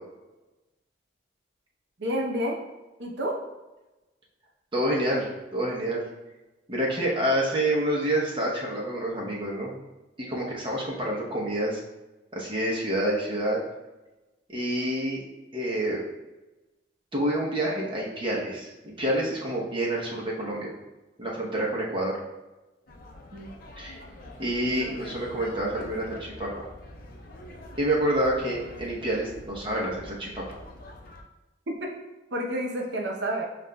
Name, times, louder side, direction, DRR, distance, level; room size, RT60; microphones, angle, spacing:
voice 1, 2.0-2.6 3.0-3.3 23.3-23.5 32.3-33.5, equal, 65° right, 0 dB, 0.7 m, -29 dB
voice 2, 4.7-6.0 6.7-9.7 10.3-11.8 12.3-13.6 14.5-15.2 15.5-16.0 17.1-20.7 21.2-22.1 23.8-24.0 24.4-26.7 27.8-30.6, right 1 dB, 25° right, -3 dB, 0.8 m, -28 dB
sound 1, 22.9-31.2, left 1 dB, 50° left, 0.5 m, -44 dB
7.0 x 2.5 x 2.2 m, 1.1 s
head